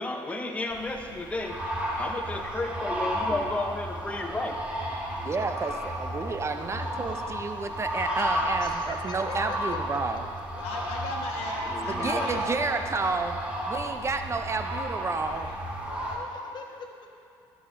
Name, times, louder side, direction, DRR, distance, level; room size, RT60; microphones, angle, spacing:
voice 1, 0.0-1.6 2.0-4.6 11.6-12.4, left 2 dB, 15° left, 3 dB, 0.7 m, -33 dB
sound 1, 0.7-16.2, equal, 10° right, 1.4 m, -33 dB
voice 2, 2.4-3.1 3.9-4.2 5.1-5.4 6.5-7.0 8.6-10.2 16.1-17.1, left 5 dB, 45° left, 1 dB, 1.2 m, -45 dB
voice 3, 5.2-10.3 11.9-13.4 13.7-15.5, right 4 dB, 30° right, 7 dB, 0.5 m, -31 dB
voice 4, 10.6-12.6 12.9-13.3 15.1-16.3, left 3 dB, 85° left, 0 dB, 1.2 m, -38 dB
14.0 x 6.3 x 2.6 m, 2.5 s
supercardioid pair, 85°, 10 cm